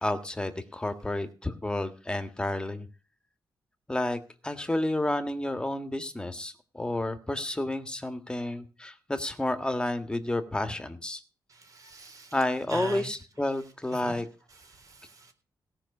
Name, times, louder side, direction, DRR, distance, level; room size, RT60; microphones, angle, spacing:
voice 1, 0.0-2.9 3.9-11.2 12.3-14.3, left 1 dB, 10° left, 9 dB, 1.7 m, -30 dB
voice 2, 11.5-13.1 13.4-14.2 14.5-15.3, right 2 dB, 50° right, 6 dB, 4.0 m, -43 dB
17.5 x 6.1 x 7.0 m, 0.35 s
wide cardioid pair, 115°, 8 cm